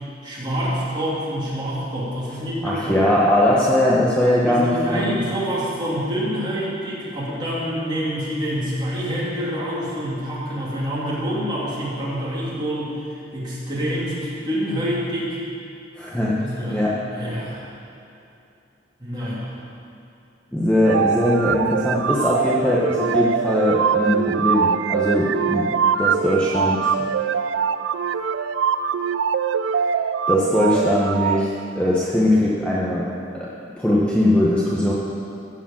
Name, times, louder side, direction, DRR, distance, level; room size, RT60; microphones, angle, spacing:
voice 1, 0.2-3.1 4.4-15.4 16.4-17.7 19.0-19.6, equal, 25° right, -7 dB, 2.7 m, -27 dB
voice 2, 2.6-5.2 16.0-16.4 16.7-16.9 20.5-25.6 26.0-26.8 30.3-31.5 31.7-33.0 33.3-33.5 33.8-34.9, left 1 dB, 5° left, -7 dB, 1.0 m, -20 dB
sound 1, 20.8-31.5, right 7 dB, 75° right, 0.3 m, -23 dB
15.0 x 5.0 x 7.3 m, 2.7 s
head